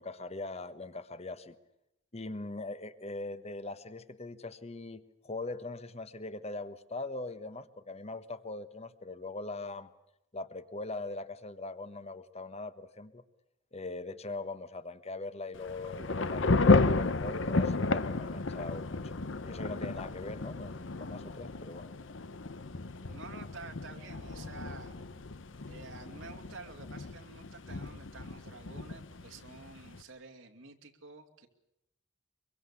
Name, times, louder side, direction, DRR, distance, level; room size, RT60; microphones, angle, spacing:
voice 1, 0.0-1.6 2.1-9.9 10.3-13.2 13.7-16.6 17.0-21.9, left 2 dB, 35° left, 12 dB, 1.3 m, -41 dB
Thunder / Rain, 15.5-30.0, left 3 dB, 70° left, 0.9 m, -32 dB
voice 2, 23.1-25.0 25.7-31.5, right 4 dB, 90° right, 4 dB, 2.7 m, -50 dB
24.5 x 23.0 x 8.4 m, 0.86 s
head